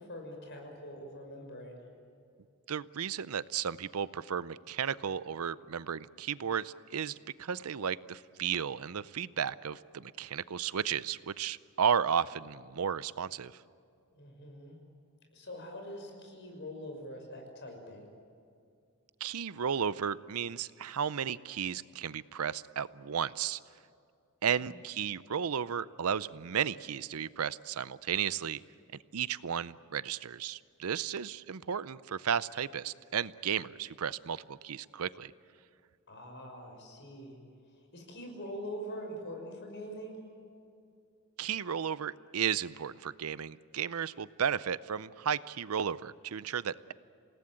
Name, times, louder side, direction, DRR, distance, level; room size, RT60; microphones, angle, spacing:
voice 1, 0.0-1.8 14.1-14.8 15.3-18.1 36.1-37.4 37.9-40.2, equal, 55° left, 3 dB, 5.8 m, -44 dB
voice 2, 2.7-13.6 19.2-23.6 24.4-28.6 29.1-35.3 41.4-46.9, right 7 dB, 70° right, 17 dB, 0.6 m, -34 dB
28.5 x 18.0 x 8.9 m, 2.4 s
head